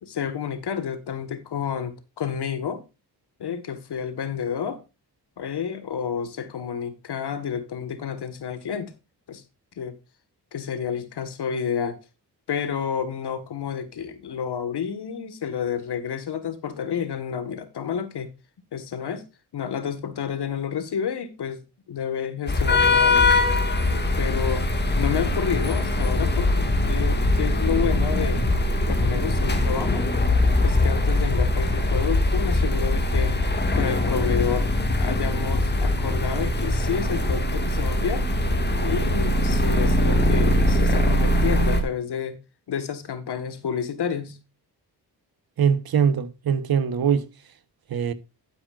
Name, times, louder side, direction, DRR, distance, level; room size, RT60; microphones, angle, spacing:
voice 1, 0.0-2.8 3.4-4.8 5.4-8.9 9.3-9.4 9.8-10.0 10.5-12.0 12.5-18.3 18.7-19.2 19.5-21.6 21.9-23.5 24.2-24.7 25.0-28.4 28.8-30.1 30.6-33.4 33.7-34.7 35.0-38.3 38.8-42.4 42.7-44.4, left 7 dB, 70° left, 1.8 m, -30 dB
sound 1, 22.5-41.8, left 1 dB, 25° left, 2.0 m, -22 dB
voice 2, 45.6-47.3 47.9-48.1, right 7 dB, 60° right, 1.3 m, -22 dB
12.0 x 9.5 x 2.5 m
wide cardioid pair, 135°, 41 cm